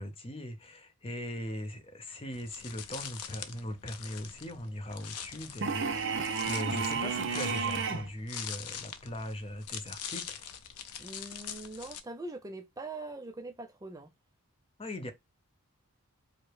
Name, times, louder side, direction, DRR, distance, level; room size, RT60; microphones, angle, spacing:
voice 1, 0.0-10.4 14.8-15.1, left 1 dB, 25° left, 0.6 m, -40 dB
sound 1, 2.3-12.0, left 8 dB, 90° left, 0.6 m, -44 dB
sound 2, 5.6-8.1, right 5 dB, 55° right, 0.7 m, -32 dB
voice 2, 11.0-14.1, right 2 dB, 15° right, 0.4 m, -42 dB
4.9 x 2.1 x 4.5 m
head